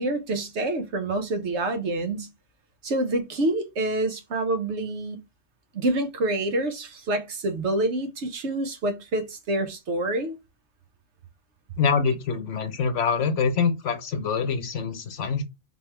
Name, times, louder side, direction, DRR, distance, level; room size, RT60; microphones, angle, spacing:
voice 1, 0.0-2.3 2.8-5.2 5.7-10.4, right 2 dB, 65° right, 1.2 m, -27 dB
voice 2, 11.8-15.4, left 5 dB, 75° left, 1.2 m, -25 dB
3.7 x 3.1 x 3.3 m
omnidirectional pair, 1.3 m